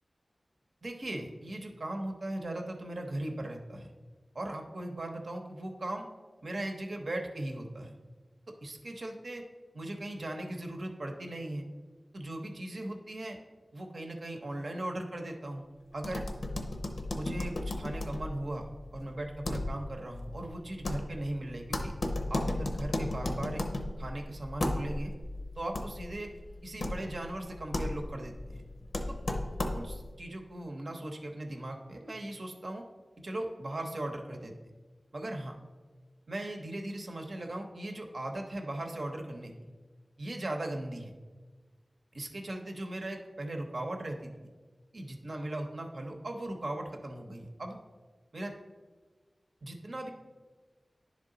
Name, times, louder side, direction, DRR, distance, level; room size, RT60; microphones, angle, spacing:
voice 1, 0.8-3.9 4.3-6.1 6.4-7.9 8.6-9.4 9.7-11.7 12.1-13.4 13.7-15.7 15.9-16.2 17.1-21.9 22.3-23.6 24.0-25.1 25.6-26.3 26.6-28.6 29.1-29.2 29.7-32.8 33.2-34.5 35.1-35.6 36.3-39.5 40.2-41.1 42.1-44.3 44.9-47.8 48.3-48.5 49.6-50.1, right 1 dB, 65° right, 3 dB, 0.8 m, -38 dB
sound 1, 16.0-30.1, left 1 dB, 80° left, 0.7 m, -35 dB
10.5 x 3.5 x 3.8 m, 1.4 s
wide cardioid pair, 50°, 0 cm